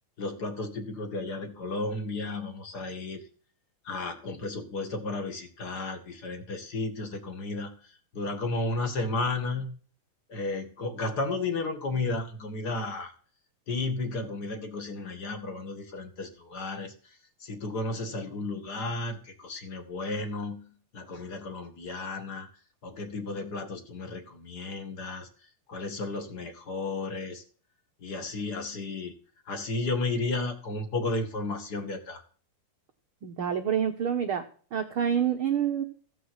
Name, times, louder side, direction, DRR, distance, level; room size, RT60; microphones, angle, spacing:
voice 1, 0.2-3.2 3.8-9.7 10.3-13.1 13.7-22.5 22.8-25.3 25.7-27.4 28.0-29.1 29.4-32.2, left 3 dB, 40° left, 7 dB, 1.7 m, -33 dB
voice 2, 33.2-34.4 34.7-35.8, right 8 dB, 80° right, 5 dB, 1.2 m, -27 dB
15.5 x 6.2 x 7.9 m, 0.42 s
omnidirectional pair, 4.0 m